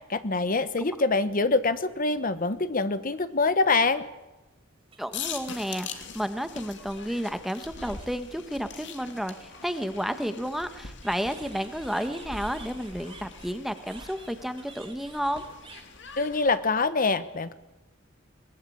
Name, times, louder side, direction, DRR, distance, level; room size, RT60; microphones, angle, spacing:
voice 1, 0.1-4.1 16.2-17.5, left 3 dB, 45° left, 12 dB, 1.1 m, -25 dB
sound 1, 4.8-6.2 7.0-7.1 7.4-8.2 8.9-10.0 11.0-16.3, right 5 dB, 30° right, 3.5 m, -51 dB
voice 2, 5.0-15.4, equal, ahead, 9 dB, 1.3 m, -32 dB
sound 2, 5.1-16.6, left 6 dB, 65° left, 2.8 m, -43 dB
22.0 x 19.5 x 8.6 m, 1.1 s
head